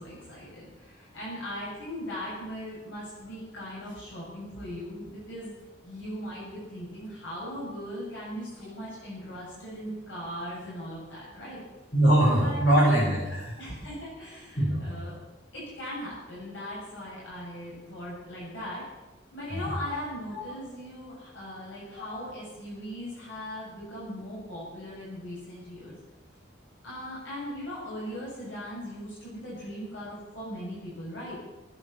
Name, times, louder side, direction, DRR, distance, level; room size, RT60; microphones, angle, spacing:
voice 1, 0.0-5.5 5.8-11.6 12.3-12.6 13.6-15.1 15.5-18.8 19.3-26.0 26.8-31.3, equal, 80° left, -7 dB, 7.6 m, -39 dB
voice 2, 11.9-13.5 14.5-14.9 19.5-19.7, right 1 dB, 60° left, -7 dB, 6.5 m, -22 dB
19.5 x 10.0 x 7.2 m, 1.1 s
head